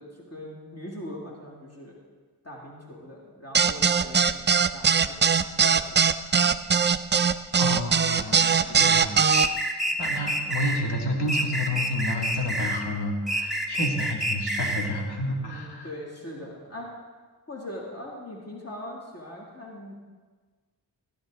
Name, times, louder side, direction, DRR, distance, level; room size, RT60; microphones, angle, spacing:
voice 1, 0.0-1.9 2.4-6.1 15.4-16.9 17.5-19.9, left 1 dB, 35° left, -3 dB, 2.6 m, -41 dB
sound 1, 3.5-9.5, right 6 dB, 25° right, 0.4 m, -20 dB
voice 2, 7.5-9.7 10.0-15.9, left 1 dB, 65° left, 0 dB, 2.6 m, -30 dB
sound 2, 9.3-10.8 11.3-12.8 13.3-14.9, right 1 dB, ahead, 1.5 m, -28 dB
16.5 x 10.0 x 3.9 m, 1.4 s
cardioid pair, 60°, 42 cm